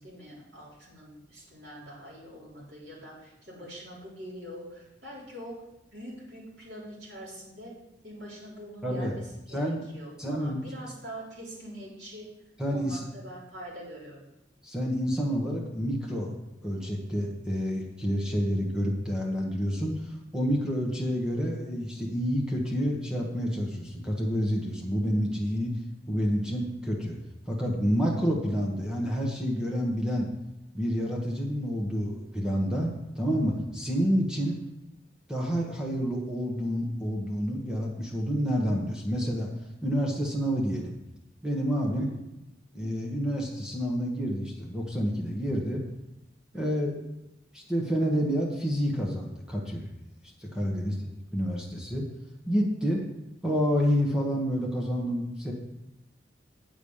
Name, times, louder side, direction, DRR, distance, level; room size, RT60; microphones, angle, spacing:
voice 1, 0.0-5.6 5.9-7.8 8.0-12.3 12.7-14.3 18.3-18.8 34.4-34.8 41.9-42.2 46.5-46.9 50.7-51.1, equal, 70° right, -6 dB, 3.7 m, -44 dB
voice 2, 8.8-9.1 9.5-9.8 10.2-10.6 12.6-13.0 14.6-16.3 16.6-25.7 26.1-27.2 27.5-30.3 30.7-34.6 35.3-39.5 39.8-41.0 41.4-42.1 42.7-45.8 46.5-46.9 47.5-49.8 50.4-52.0 52.5-53.0 53.4-55.5, equal, 5° right, -2 dB, 1.2 m, -28 dB
8.1 x 5.0 x 7.1 m, 0.93 s
head